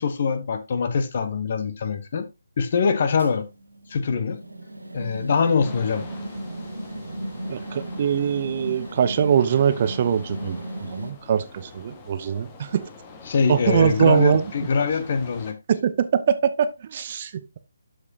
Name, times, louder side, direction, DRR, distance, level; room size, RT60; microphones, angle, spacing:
voice 1, 0.0-2.3 2.6-3.5 3.9-4.4 4.9-6.0 13.3-15.6, left 5 dB, 40° left, 1.1 m, -23 dB
sound 1, 3.2-11.1, right 1 dB, 80° right, 1.8 m, -35 dB
sound 2, 5.6-15.5, left 4 dB, 20° left, 1.3 m, -44 dB
voice 2, 7.5-12.8 13.5-14.5 15.7-17.6, right 8 dB, 35° right, 0.8 m, -22 dB
12.0 x 5.0 x 2.8 m
figure-of-eight pair, 145°, 0 cm